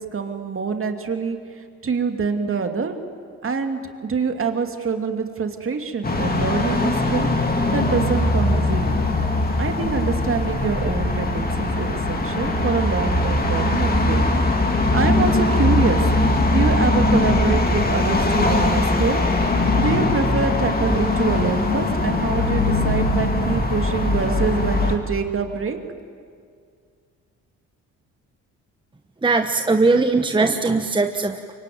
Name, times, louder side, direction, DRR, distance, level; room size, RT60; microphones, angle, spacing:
voice 1, 0.0-3.0 3.4-7.3 7.7-9.0 9.6-14.2 14.9-16.0 16.5-19.2 19.8-25.8, right 5 dB, 45° right, 5 dB, 2.6 m, -25 dB
sound 1, 6.0-25.0, left 2 dB, 30° left, 3.1 m, -20 dB
voice 2, 29.2-31.5, right 3 dB, 15° right, 6 dB, 1.2 m, -20 dB
24.5 x 23.5 x 9.5 m, 2.1 s
cardioid pair, 85°, 31 cm